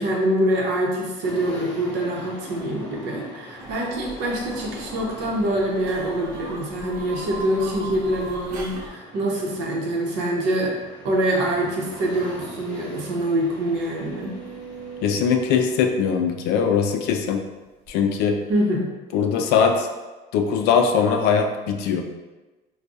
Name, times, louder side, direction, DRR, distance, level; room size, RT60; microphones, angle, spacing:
voice 1, 0.0-10.7 11.0-14.3 18.5-18.9, right 1 dB, 65° right, -2 dB, 0.9 m, -25 dB
sound 1, 1.2-15.9, left 1 dB, 5° left, 0.7 m, -42 dB
sound 2, 3.6-8.9, right 2 dB, 45° right, 0.5 m, -39 dB
sound 3, 11.8-11.9 12.3-12.4 13.0-17.2 17.8-17.9, right 5 dB, 25° right, 1.0 m, -42 dB
voice 2, 15.0-17.4 17.9-18.4 19.1-19.9 20.3-22.0, left 6 dB, 60° left, 4 dB, 0.4 m, -21 dB
4.6 x 2.3 x 2.6 m, 1.2 s
cardioid pair, 175°, 19 cm